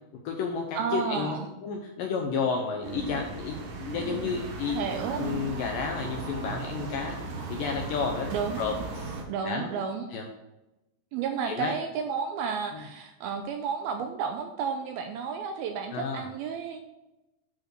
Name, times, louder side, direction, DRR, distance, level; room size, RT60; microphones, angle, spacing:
voice 1, 0.2-1.4 1.6-4.8 5.2-7.2 7.5-8.3 8.6-9.2 9.4-9.7 10.1-10.3 11.5-11.8 12.7-12.8 15.9-16.3, left 5 dB, 75° left, 2 dB, 2.1 m, -31 dB
voice 2, 0.8-1.5 4.7-5.2 8.3-8.6 9.3-10.1 11.1-16.8, right 6 dB, 85° right, 5 dB, 2.3 m, -32 dB
sound 1, 2.8-9.2, right 4 dB, 60° right, 2.4 m, -36 dB
10.5 x 5.0 x 4.6 m, 0.96 s
omnidirectional pair, 4.9 m